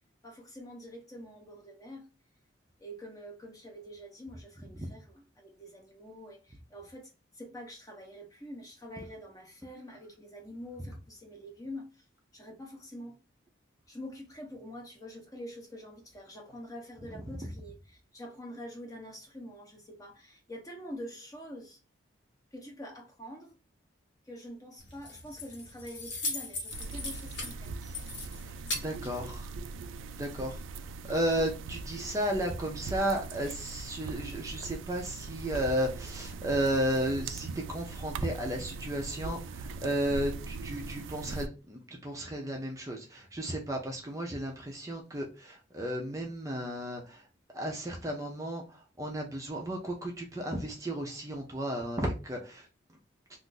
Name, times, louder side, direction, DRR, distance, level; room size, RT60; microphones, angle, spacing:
voice 1, 0.2-2.0 2.8-12.1 12.3-13.2 13.9-21.8 22.5-23.5 24.3-27.7, equal, 20° left, 0.7 m, -46 dB
Keys jangling, 24.8-29.8, left 3 dB, 60° left, 1.1 m, -39 dB
sound 1, 26.7-41.5, right 4 dB, 80° right, 0.3 m, -41 dB
voice 2, 28.5-29.5 30.2-47.2 47.5-48.6 49.0-52.7, right 1 dB, 15° right, 0.5 m, -33 dB
2.5 x 2.5 x 3.7 m
head